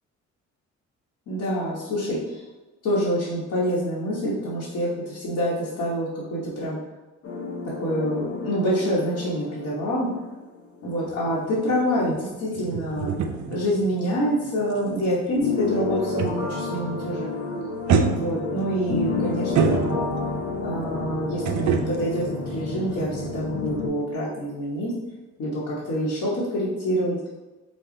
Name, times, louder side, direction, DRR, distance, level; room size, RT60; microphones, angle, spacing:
voice 1, 1.3-2.4 2.8-6.8 7.8-10.1 10.8-13.1 13.5-17.3 18.0-20.0 20.6-24.9 25.4-27.2, equal, 65° left, -8 dB, 1.2 m, -26 dB
sound 1, 7.2-10.6 10.9-11.0 15.4-23.9, left 3 dB, 50° left, 0.9 m, -30 dB
sound 2, 11.1-16.8 17.0-17.4 17.9-20.4 21.5-23.4 23.7-23.8, right 6 dB, 65° right, 0.5 m, -28 dB
5.3 x 2.3 x 3.8 m, 1.1 s
cardioid pair, 90°, 30 cm